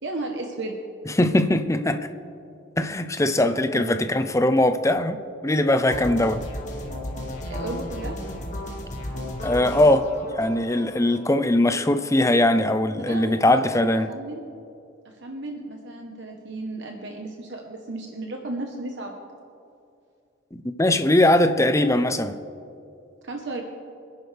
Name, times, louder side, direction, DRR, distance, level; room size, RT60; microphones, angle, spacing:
voice 1, 0.0-0.8 3.7-4.0 7.5-8.2 13.0-14.4 15.0-19.2 23.2-23.6, right 2 dB, 60° right, 1 dB, 1.2 m, -34 dB
voice 2, 1.1-2.1 2.8-6.4 9.4-10.1 10.4-14.1 20.5-22.4, left 1 dB, 15° left, 9 dB, 0.6 m, -21 dB
sound 1, 5.9-11.9, left 1 dB, 35° left, 2.0 m, -34 dB
25.5 x 10.5 x 3.5 m, 2.6 s
head